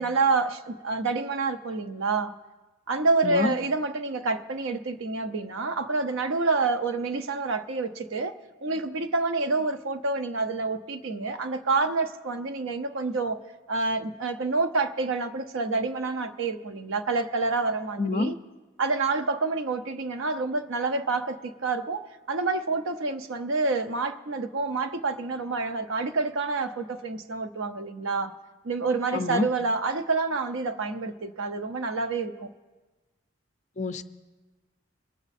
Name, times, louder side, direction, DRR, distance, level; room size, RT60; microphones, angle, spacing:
voice 1, 0.0-2.3 2.9-8.3 8.6-13.4 13.7-18.4 18.8-28.3 28.6-32.5, right 3 dB, 70° right, 0.7 m, -28 dB
voice 2, 3.2-3.5 18.0-18.3 29.1-29.5 33.8-34.0, left 3 dB, 35° left, 0.4 m, -27 dB
21.5 x 7.9 x 4.2 m
head